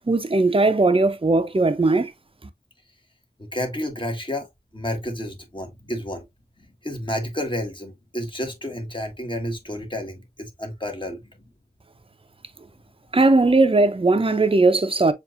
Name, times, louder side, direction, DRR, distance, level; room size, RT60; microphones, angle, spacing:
voice 1, 0.0-2.1 13.1-15.1, right 3 dB, 35° right, 0.7 m, -18 dB
voice 2, 3.4-4.5 4.7-6.3 6.6-11.4, left 1 dB, 30° left, 1.5 m, -31 dB
7.1 x 2.6 x 2.5 m
wide cardioid pair, 50°, 16 cm